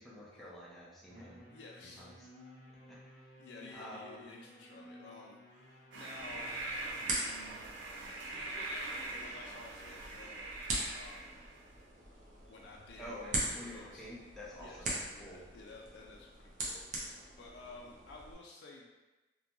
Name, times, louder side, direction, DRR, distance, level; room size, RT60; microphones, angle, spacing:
voice 1, 0.0-1.4 2.0-2.1 2.9-3.0 3.7-4.2 13.0-15.4, left 1 dB, ahead, -7 dB, 0.5 m, -48 dB
sound 1, 1.1-7.5, equal, 20° right, 1.0 m, -56 dB
voice 2, 1.5-2.1 3.4-6.6 8.2-10.5 10.9-11.4 12.5-13.1 13.4-14.1 14.5-18.9, left 3 dB, 70° left, -1 dB, 0.3 m, -53 dB
sound 2, 5.9-11.7, right 2 dB, 90° right, 0.5 m, -42 dB
sound 3, 6.2-18.3, right 1 dB, 40° right, 0.6 m, -42 dB
2.4 x 2.2 x 2.9 m, 1.1 s
head